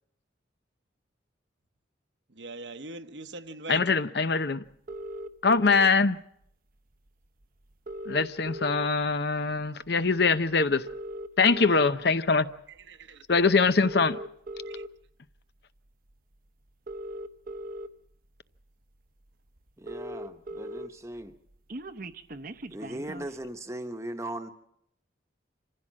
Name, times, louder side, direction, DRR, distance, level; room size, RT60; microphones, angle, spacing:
voice 1, 2.3-3.9 12.9-13.2 14.7-14.8, right 3 dB, 70° right, 1.1 m, -41 dB
voice 2, 3.7-4.6 5.4-6.2 8.1-10.9 11.4-12.5 13.3-14.2, left 4 dB, 55° left, 0.7 m, -23 dB
Mobile Phone - outbound call ringing, 4.9-5.9 7.1-7.2 7.4-7.5 7.7-9.2 9.6-9.9 10.7-11.9 12.6-12.8 13.7-14.9 16.1-16.2 16.7-17.9 18.6-18.7 18.9-19.0 19.3-19.4 19.6-20.9 21.2-23.4, equal, 45° right, 0.8 m, -39 dB
voice 3, 19.8-21.4 22.7-24.5, right 1 dB, 15° right, 1.1 m, -38 dB
26.0 x 15.5 x 7.5 m
head